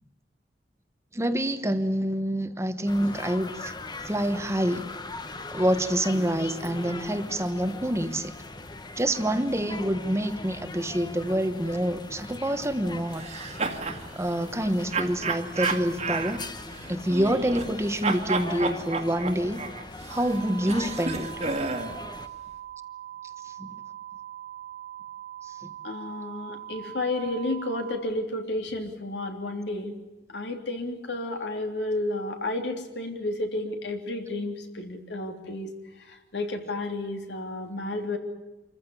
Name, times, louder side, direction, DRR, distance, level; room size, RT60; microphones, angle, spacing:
voice 1, 1.1-3.7 4.0-4.9 5.5-8.3 9.0-13.3 14.1-16.4 16.9-19.6 20.1-21.3 23.4-23.8 25.6-25.7, equal, 15° right, 9 dB, 1.2 m, -27 dB
sound 1, 2.9-22.3, left 2 dB, 25° left, 1.1 m, -40 dB
sound 2, 13.1-14.0 14.9-17.8 18.0-22.0, right 4 dB, 40° right, 2.0 m, -31 dB
sound 3, 20.1-28.0, right 12 dB, 85° right, 4.5 m, -42 dB
voice 2, 25.8-30.0 30.3-35.7 36.1-38.2, left 2 dB, 75° left, 4 dB, 3.3 m, -31 dB
26.0 x 15.0 x 9.9 m, 1.1 s
head